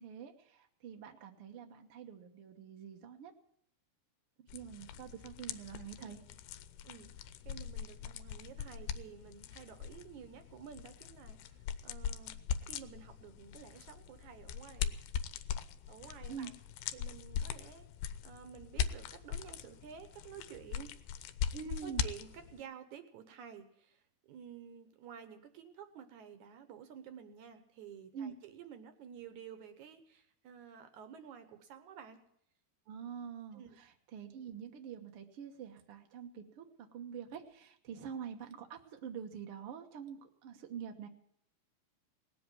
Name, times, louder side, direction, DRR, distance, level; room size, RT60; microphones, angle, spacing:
voice 1, 0.0-3.3 4.4-6.2 16.3-16.5 21.5-22.0 28.1-28.4 32.9-41.1, right 7 dB, 90° right, 3 dB, 1.2 m, -46 dB
sound 1, 4.5-22.6, left 8 dB, 90° left, 2.8 m, -41 dB
voice 2, 7.4-14.9 15.9-16.5 16.9-17.9 18.2-20.9 21.8-32.2 33.5-33.8, right 8 dB, 70° right, 9 dB, 1.9 m, -52 dB
19.0 x 7.8 x 9.2 m, 0.71 s
omnidirectional pair, 4.6 m